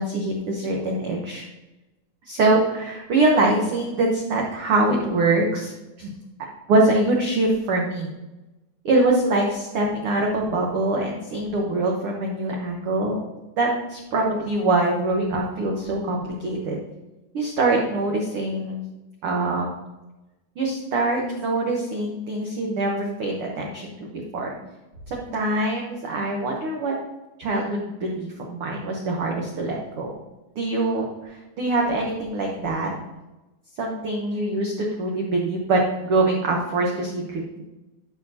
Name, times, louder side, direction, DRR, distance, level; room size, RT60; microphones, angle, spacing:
voice 1, 0.0-1.5 2.3-6.1 6.7-8.1 8.8-13.2 13.6-16.8 17.3-18.8 19.2-19.7 20.6-24.6 25.1-26.9 27.4-30.1 30.6-32.9 33.8-37.6, right 2 dB, 75° right, -1 dB, 1.2 m, -24 dB
11.0 x 6.0 x 2.8 m, 1.0 s
omnidirectional pair, 4.0 m